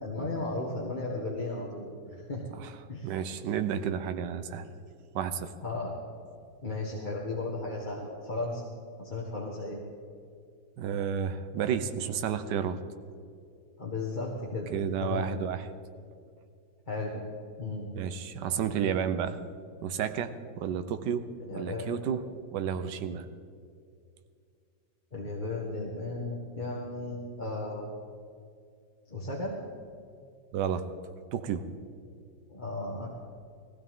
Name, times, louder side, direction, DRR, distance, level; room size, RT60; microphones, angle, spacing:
voice 1, 0.0-2.4 2.9-3.1 5.6-5.9 6.6-8.7 9.0-9.8 13.8-14.7 15.0-15.3 16.9-17.2 17.6-17.9 21.5-22.1 25.1-27.8 29.1-29.6 32.5-33.1, left 2 dB, 25° left, -3 dB, 1.6 m, -35 dB
voice 2, 3.0-4.7 5.1-5.5 10.8-12.8 14.7-15.7 17.9-19.4 19.8-21.2 21.5-22.3 22.5-23.3 30.5-30.8 31.3-31.7, right 8 dB, 70° right, 9 dB, 1.4 m, -31 dB
19.0 x 16.0 x 3.7 m, 2.4 s
omnidirectional pair, 2.0 m